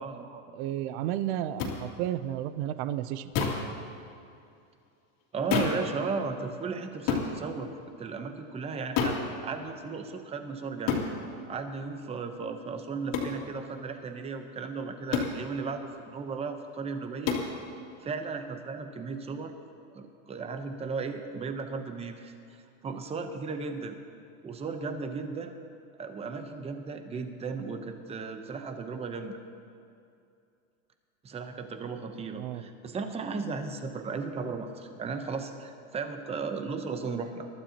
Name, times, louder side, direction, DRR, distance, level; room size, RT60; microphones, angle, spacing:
voice 1, 0.0-0.4 5.3-7.7 8.0-11.0 11.5-17.4 18.0-19.5 19.9-22.3 22.8-24.0 24.4-25.5 25.9-29.4 31.2-37.5, right 4 dB, 15° right, 7 dB, 0.8 m, -35 dB
voice 2, 0.5-3.3 32.3-32.6, right 12 dB, 55° right, 13 dB, 0.6 m, -32 dB
sound 1, 1.6-1.8 3.3-3.7 5.5-5.9 7.1-7.3 9.0-9.3 10.9-11.1 13.1-13.4 15.1-15.4 17.3-17.5, left 6 dB, 55° left, 2.6 m, -27 dB
22.0 x 12.5 x 2.9 m, 2.5 s
supercardioid pair, 150°, 41 cm